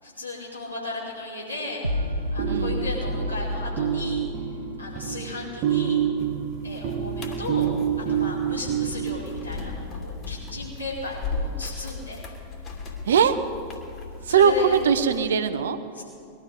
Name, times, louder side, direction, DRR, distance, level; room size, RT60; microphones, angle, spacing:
voice 1, 0.0-1.8 2.3-4.2 4.8-6.0 6.6-7.7 8.1-12.2 14.2-14.7 16.0-16.1, left 2 dB, 85° left, -6 dB, 5.1 m, -35 dB
sound 1, 1.8-5.3, left 1 dB, 90° right, 0.7 m, -30 dB
sound 2, 2.0-10.0, right 8 dB, 40° right, 1.1 m, -28 dB
voice 2, 2.4-2.9 7.6-7.8 13.1-13.4 14.2-15.8, right 7 dB, 65° right, 10 dB, 0.9 m, -21 dB
sound 3, 6.2-15.2, left 4 dB, 35° left, 2.7 m, -37 dB
21.0 x 13.0 x 5.1 m, 2.7 s
figure-of-eight pair, 90°, 0 cm